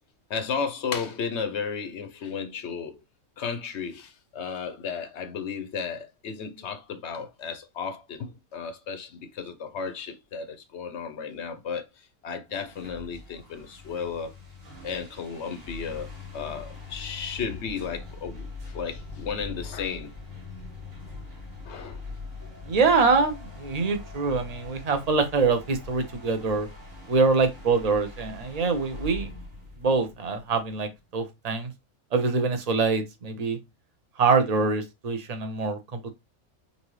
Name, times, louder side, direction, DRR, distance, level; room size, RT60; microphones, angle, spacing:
voice 1, 0.3-3.0 3.4-11.8 12.2-14.3 14.8-16.1 16.3-20.1 21.6-22.0, left 6 dB, 60° left, 0.8 m, -34 dB
sound 1, 12.5-31.0, left 3 dB, 60° right, 2.4 m, -42 dB
voice 2, 22.7-26.7 27.1-29.3 29.8-31.7 32.1-33.6 34.2-36.1, right 4 dB, 35° right, 0.6 m, -24 dB
5.4 x 2.7 x 3.1 m
omnidirectional pair, 1.5 m